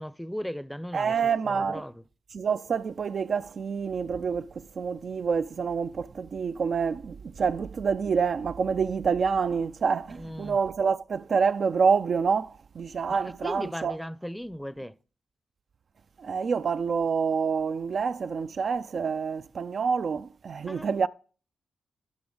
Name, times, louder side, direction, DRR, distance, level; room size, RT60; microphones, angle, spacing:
voice 1, 0.0-1.2 1.4-2.0 10.2-10.6 13.1-14.9 20.7-20.9, equal, 5° left, 0.6 m, -37 dB
voice 2, 0.9-1.8 2.3-14.0 16.2-21.1, right 5 dB, 60° right, 0.4 m, -27 dB
13.5 x 6.1 x 3.9 m
cardioid pair, 60°, 0 cm